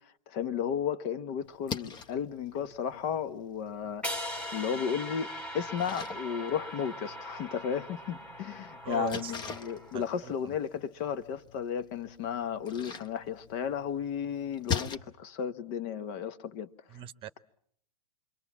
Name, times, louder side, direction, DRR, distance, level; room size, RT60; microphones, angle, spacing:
voice 1, 0.3-16.7, left 8 dB, 45° left, 1.2 m, -34 dB
Splash splatter, 1.4-15.0, left 7 dB, 20° left, 1.0 m, -43 dB
sound 1, 4.0-10.2, equal, 5° left, 1.6 m, -40 dB
voice 2, 8.8-9.6 9.9-10.5 16.9-17.4, right 12 dB, 25° right, 1.0 m, -40 dB
27.0 x 23.5 x 7.3 m
hypercardioid pair, 120°, 20 cm